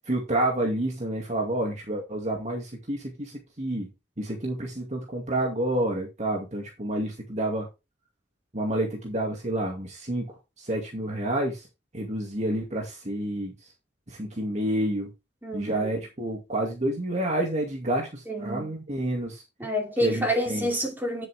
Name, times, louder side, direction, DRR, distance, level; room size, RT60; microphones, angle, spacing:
voice 1, 0.1-3.9 4.2-7.7 8.5-11.7 11.9-13.7 14.1-15.1 15.5-19.4 20.0-20.7, right 1 dB, 40° right, 2.3 m, -29 dB
voice 2, 15.4-15.9 18.3-18.7 19.6-21.3, equal, 10° right, 4.8 m, -28 dB
10.5 x 7.7 x 3.5 m
head